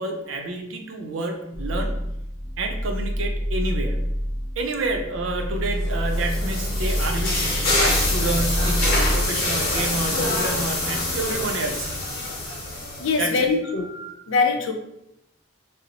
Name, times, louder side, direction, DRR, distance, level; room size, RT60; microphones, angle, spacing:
voice 1, 0.0-2.1 2.6-4.1 4.6-11.9 13.2-13.5, right 2 dB, 80° right, 3 dB, 0.5 m, -29 dB
sound 1, 1.5-9.3, equal, ahead, 0.4 m, -27 dB
sound 2, 5.8-13.3, left 2 dB, 45° left, 0.9 m, -26 dB
voice 2, 13.0-14.7, left 4 dB, 80° left, 3 dB, 0.5 m, -23 dB
3.9 x 2.0 x 2.8 m, 0.83 s
head